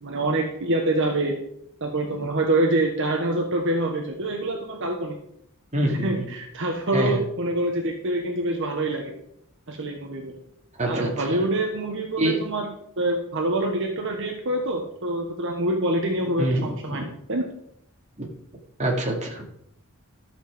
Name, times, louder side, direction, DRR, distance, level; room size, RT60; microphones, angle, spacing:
voice 1, 0.0-1.4 1.8-5.2 5.9-9.1 9.7-10.4 10.9-12.7 13.0-17.5, right 1 dB, 60° right, 2 dB, 1.4 m, -26 dB
voice 2, 5.7-6.2 6.9-7.2 10.8-11.4 12.2-12.4 16.4-17.0 18.2-18.3 18.8-19.4, right 1 dB, 35° right, -1 dB, 2.9 m, -25 dB
13.5 x 7.4 x 5.2 m, 0.74 s
head